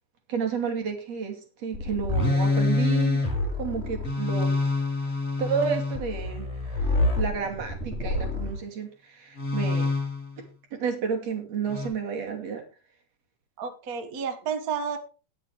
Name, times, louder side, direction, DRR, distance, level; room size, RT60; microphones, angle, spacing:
voice 1, 0.3-3.2 3.6-4.6 5.4-9.9 10.7-12.6, right 6 dB, 50° right, 3 dB, 3.5 m, -31 dB
sound 1, 1.7-8.6 9.4-10.4 11.7-11.9, left 2 dB, 20° left, 3.3 m, -26 dB
voice 2, 13.6-15.0, right 6 dB, 75° right, 8 dB, 0.8 m, -31 dB
19.0 x 6.7 x 3.4 m, 0.33 s
omnidirectional pair, 4.0 m